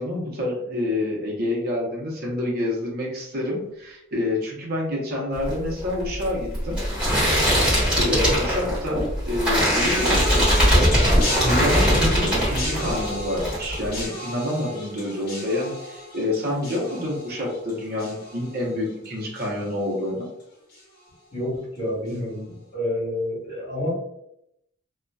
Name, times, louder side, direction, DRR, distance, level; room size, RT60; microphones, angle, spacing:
voice 1, 0.0-6.8 7.6-20.3, left 1 dB, 45° right, -2 dB, 0.7 m, -28 dB
sound 1, 5.4-13.1 13.4-14.0, equal, 5° right, 1.3 m, -21 dB
sound 2, 9.7-19.1 19.3-19.9 20.7-20.8, left 1 dB, 50° left, 0.8 m, -32 dB
voice 2, 21.3-23.9, left 1 dB, 30° left, -7 dB, 1.3 m, -28 dB
2.7 x 2.2 x 2.2 m, 0.79 s
head